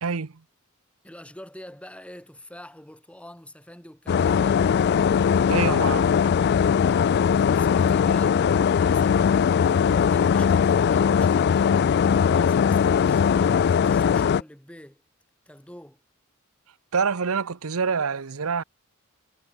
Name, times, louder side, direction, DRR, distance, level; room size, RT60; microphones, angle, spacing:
voice 1, 0.0-0.3 5.5-6.1 16.9-18.6, right 5 dB, 80° right, 0.8 m, -26 dB
voice 2, 1.0-4.6 7.2-9.3 9.6-11.8 12.2-15.0 15.5-16.0, left 1 dB, 5° left, 6.4 m, -44 dB
sound 1, 4.1-14.4, left 7 dB, 50° left, 0.3 m, -20 dB
head